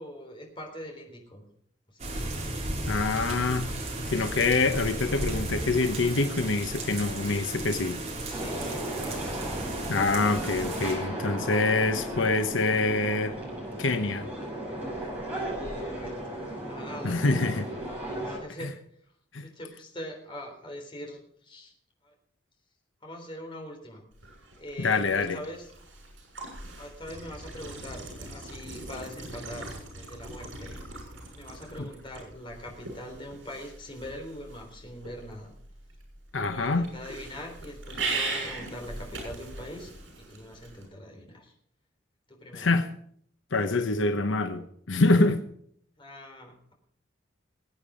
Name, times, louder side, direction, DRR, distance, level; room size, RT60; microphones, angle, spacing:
voice 1, 0.0-1.5 1.9-2.3 8.2-9.4 15.7-16.3 16.6-17.4 18.2-18.7 19.4-21.7 22.0-22.1 23.0-24.0 24.6-25.7 26.8-30.8 31.3-35.5 36.4-39.9 40.2-41.5 42.3-42.7 46.0-46.7, equal, 25° left, 2 dB, 3.7 m, -42 dB
sound 1, 2.0-10.9, right 1 dB, 35° right, 3.9 m, -34 dB
voice 2, 2.9-3.7 4.1-8.0 9.9-13.4 13.8-14.3 17.0-17.7 19.3-19.5 24.8-25.4 36.3-36.9 42.5-42.9 43.5-45.4, left 3 dB, 80° left, 8 dB, 1.0 m, -25 dB
sound 2, 8.3-18.4, right 1 dB, 10° right, 6.6 m, -35 dB
sound 3, 24.1-40.8, right 3 dB, 80° right, 6.7 m, -40 dB
20.5 x 8.8 x 5.0 m, 0.66 s
head